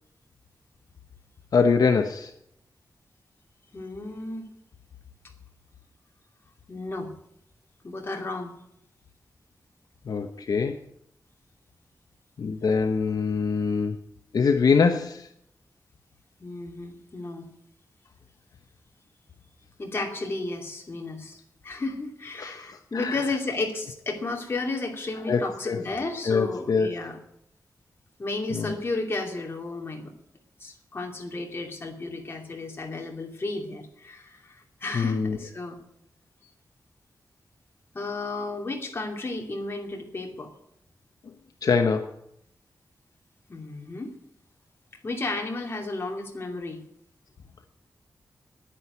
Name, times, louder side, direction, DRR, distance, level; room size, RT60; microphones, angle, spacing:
voice 1, 1.5-2.3 10.1-10.8 12.4-14.0 14.3-15.3 22.4-22.7 22.9-23.2 25.3-25.8 26.3-26.9 28.5-28.7 34.9-35.4 41.6-42.1, left 5 dB, 70° left, 5 dB, 1.0 m, -23 dB
voice 2, 3.7-4.5 6.7-7.1 7.8-8.5 16.4-17.5 19.8-27.2 28.2-30.1 30.6-35.8 37.9-40.5 43.5-44.1 45.0-46.8, left 2 dB, 35° left, 1 dB, 2.6 m, -33 dB
10.5 x 10.0 x 9.5 m, 0.75 s
wide cardioid pair, 170°, 7 cm